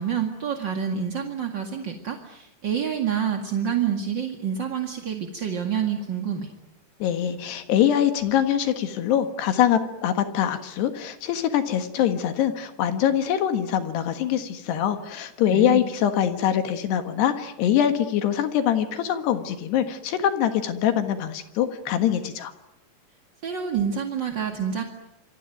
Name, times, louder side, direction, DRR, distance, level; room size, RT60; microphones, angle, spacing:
voice 1, 0.0-6.5 15.5-15.8 23.4-24.8, right 8 dB, 40° right, 4 dB, 1.7 m, -27 dB
voice 2, 7.0-22.5, left 10 dB, 75° left, 8 dB, 3.6 m, -23 dB
27.5 x 23.5 x 9.2 m, 0.81 s
omnidirectional pair, 5.0 m